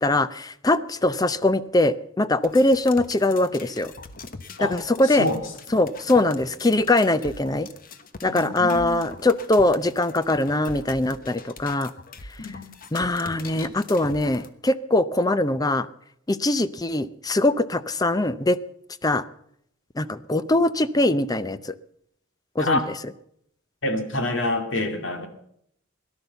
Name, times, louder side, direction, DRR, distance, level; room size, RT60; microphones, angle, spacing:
voice 1, 0.0-3.9 4.6-5.3 5.7-7.7 8.2-11.9 12.9-15.9 16.3-18.6 19.0-19.2 20.0-21.7 22.6-22.8, left 2 dB, 20° left, 14 dB, 0.6 m, -22 dB
sound 1, 2.4-14.5, left 4 dB, 45° left, 1.1 m, -42 dB
voice 2, 5.0-5.4 5.7-5.8 8.3-9.1 12.4-12.7 22.6-22.8 23.8-25.3, left 1 dB, 65° left, 5 dB, 2.4 m, -27 dB
17.5 x 11.5 x 6.9 m, 0.71 s
head